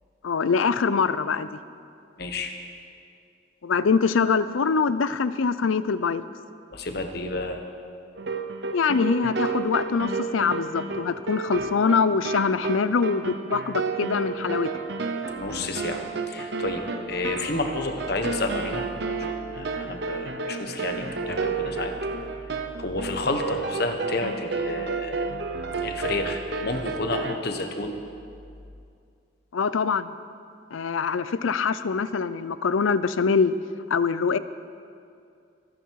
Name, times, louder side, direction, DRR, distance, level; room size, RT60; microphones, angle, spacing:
voice 1, 0.2-1.6 3.6-6.2 8.7-14.7 29.5-30.1 30.7-33.5 33.9-34.4, left 5 dB, 80° left, 15 dB, 0.5 m, -24 dB
voice 2, 2.2-2.5 6.7-7.6 15.3-16.8 17.1-18.9 19.2-21.9 22.5-25.3 25.8-28.0, left 2 dB, 50° left, 5 dB, 1.2 m, -30 dB
sound 1, 8.1-27.4, right 4 dB, 55° right, 0.8 m, -31 dB
24.0 x 9.3 x 4.7 m, 2.4 s
head